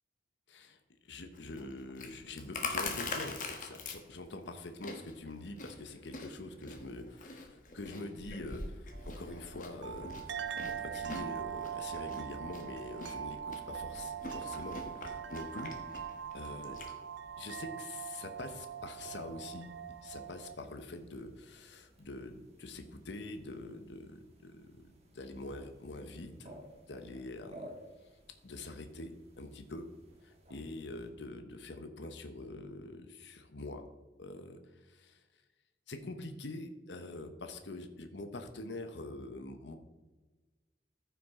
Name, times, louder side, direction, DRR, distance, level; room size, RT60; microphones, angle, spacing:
voice 1, 0.5-15.8 16.3-16.8 17.4-24.9 25.1-26.5 26.9-27.7 28.4-29.9 30.2-33.8 34.2-35.2 35.9-39.7, left 2 dB, 80° left, 7 dB, 0.9 m, -45 dB
Chewing mastication, 1.3-16.9, left 3 dB, 45° left, 1.2 m, -44 dB
sound 1, 8.9-20.6, right 8 dB, 75° right, 0.4 m, -42 dB
sound 2, 13.4-31.1, right 1 dB, 35° right, 1.6 m, -59 dB
14.0 x 5.9 x 3.6 m, 1.2 s
head